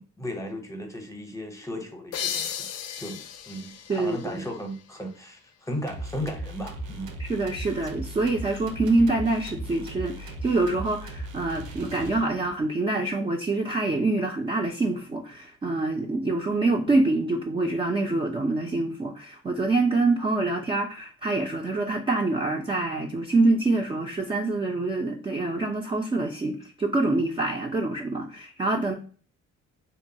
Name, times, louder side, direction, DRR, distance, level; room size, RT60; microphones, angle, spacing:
voice 1, 0.0-2.7 3.0-7.1, equal, 10° left, 3 dB, 0.7 m, -36 dB
sound 1, 2.1-5.5, left 8 dB, 55° left, 0.4 m, -36 dB
voice 2, 3.9-4.5 7.2-28.9, right 2 dB, 20° right, 1 dB, 0.3 m, -26 dB
sound 2, 5.9-12.6, right 1 dB, 80° right, 0.6 m, -37 dB
2.8 x 2.2 x 2.6 m, 0.42 s
cardioid pair, 90°, 30 cm